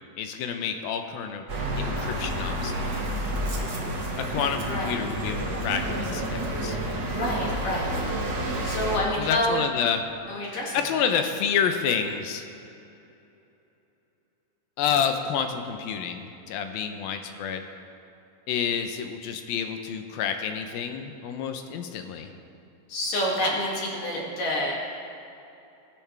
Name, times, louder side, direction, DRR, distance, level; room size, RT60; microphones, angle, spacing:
voice 1, 0.2-1.4 1.8-3.0 4.3-6.8 9.2-10.0 10.4-12.4 14.8-17.6 18.5-22.3, left 7 dB, 75° left, 6 dB, 2.6 m, -29 dB
sound 1, 1.5-9.0, right 1 dB, 50° right, 1.1 m, -29 dB
voice 2, 4.7-5.0 7.1-7.9 8.6-9.7 10.3-10.8 22.9-24.7, left 1 dB, 60° left, -4 dB, 4.0 m, -28 dB
24.0 x 10.5 x 3.5 m, 2.9 s
omnidirectional pair, 4.5 m